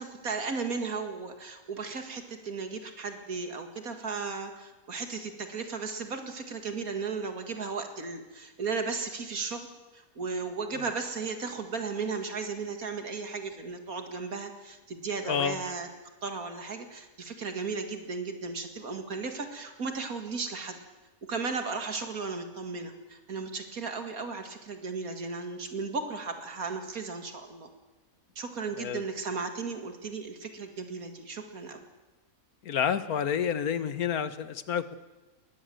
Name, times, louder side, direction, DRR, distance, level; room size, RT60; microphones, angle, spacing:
voice 1, 0.0-9.7 9.9-15.9 16.2-20.8 21.3-27.7 28.4-31.8, right 4 dB, 80° right, 6 dB, 2.4 m, -35 dB
voice 2, 15.2-15.6 28.8-29.0 32.6-34.9, left 8 dB, 90° left, 13 dB, 1.6 m, -29 dB
21.0 x 19.5 x 7.7 m, 1.1 s
omnidirectional pair, 1.5 m